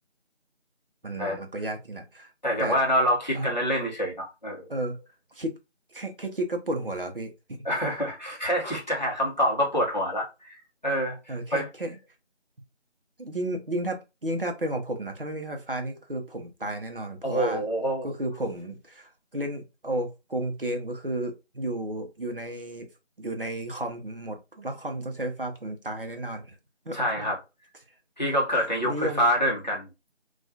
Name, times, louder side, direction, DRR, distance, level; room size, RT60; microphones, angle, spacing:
voice 1, 1.0-2.3 2.6-2.8 3.3-3.5 4.7-5.0 5.3-5.5 5.9-7.6 11.3-12.0 13.2-17.6 18.0-22.9 23.2-26.6 26.9-27.3 28.5-29.3, right 1 dB, 50° right, 0.6 m, -33 dB
voice 2, 2.4-4.7 7.6-11.7 17.2-18.1 26.9-27.4 28.2-29.9, equal, 40° left, 0.8 m, -26 dB
2.3 x 2.2 x 2.6 m
figure-of-eight pair, 175°, 35 cm